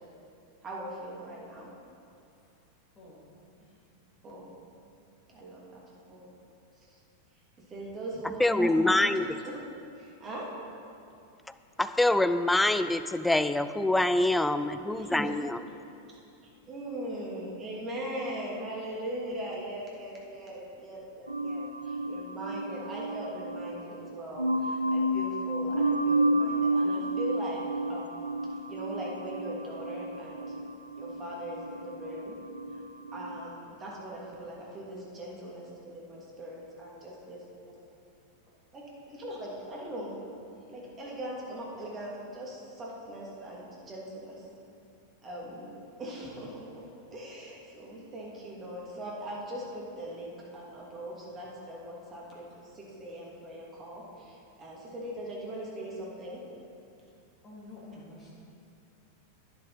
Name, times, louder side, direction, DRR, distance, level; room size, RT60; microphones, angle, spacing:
voice 1, 0.6-1.7 4.2-4.5 5.3-5.8 6.1-6.3 6.8-7.0 7.7-9.1 9.4-9.5 10.0-10.5 14.8-15.3 16.6-27.6 27.9-28.1 28.7-30.5 30.9-32.4 32.7-32.8 33.1-37.4 38.7-38.8 39.2-40.1 40.7-44.4 45.2-45.7 46.0-46.8 47.1-56.4, right 1 dB, 25° right, -4 dB, 2.7 m, -40 dB
voice 2, 1.2-1.6 2.9-3.2 3.6-3.7 4.6-4.7 36.4-36.5 37.7-37.8 39.1-39.2 39.6-39.7 44.3-44.4 57.4-58.3, left 2 dB, 20° left, -6 dB, 2.9 m, -50 dB
voice 3, 8.2-9.4 11.5-15.6, left 1 dB, 5° left, 11 dB, 0.4 m, -25 dB
sound 1, 21.3-33.5, right 1 dB, 85° right, 0.4 m, -31 dB
11.0 x 10.5 x 4.2 m, 2.6 s
figure-of-eight pair, 90°, 0 cm